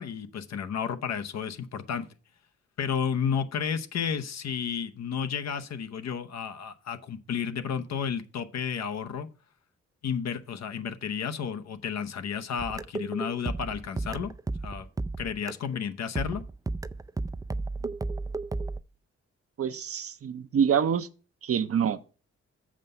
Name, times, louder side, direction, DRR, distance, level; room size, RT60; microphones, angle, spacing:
voice 1, 0.0-2.1 2.8-9.3 10.0-14.3 14.6-14.9 15.2-16.4, left 7 dB, 65° left, 0.8 m, -32 dB
sound 1, 12.6-15.8 16.2-18.8, right 3 dB, 15° right, 0.4 m, -33 dB
voice 2, 19.6-21.1 21.4-22.0, right 7 dB, 55° right, 0.7 m, -26 dB
7.4 x 5.4 x 5.5 m
supercardioid pair, 50°, 29 cm